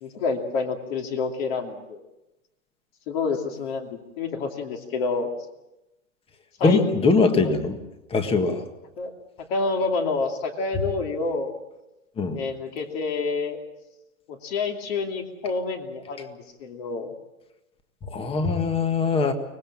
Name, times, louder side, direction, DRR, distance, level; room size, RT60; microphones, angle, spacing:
voice 1, 0.0-2.0 3.1-5.3 6.6-6.9 7.4-7.6 9.0-9.1 9.5-11.5 12.3-13.6 14.3-17.1, left 4 dB, 45° left, 3 dB, 2.8 m, -28 dB
voice 2, 6.6-7.8 8.1-8.6 12.2-12.4 18.0-19.3, left 4 dB, 15° left, 8 dB, 1.7 m, -22 dB
24.5 x 19.5 x 7.4 m, 0.95 s
hypercardioid pair, 145°, 41 cm